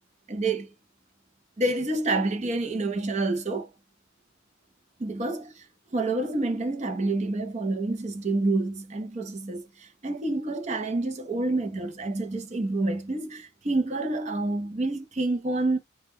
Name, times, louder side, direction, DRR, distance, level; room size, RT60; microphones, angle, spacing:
voice 1, 0.3-0.7 1.6-3.7 5.0-5.6 5.9-15.8, right 2 dB, 35° right, 0.5 m, -28 dB
2.1 x 2.1 x 3.4 m
head